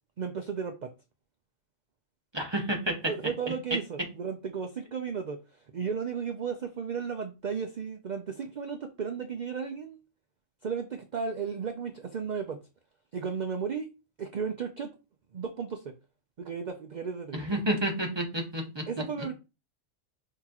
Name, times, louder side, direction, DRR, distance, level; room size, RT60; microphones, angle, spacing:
voice 1, 0.2-0.9 3.0-10.0 10.6-12.6 13.1-13.9 14.2-14.9 15.3-15.9 16.4-17.4 18.9-19.3, right 6 dB, 55° right, 5 dB, 0.5 m, -34 dB
voice 2, 2.3-3.0 17.3-18.8, right 1 dB, 20° right, 1 dB, 1.1 m, -30 dB
5.8 x 2.9 x 2.9 m, 0.28 s
omnidirectional pair, 1.3 m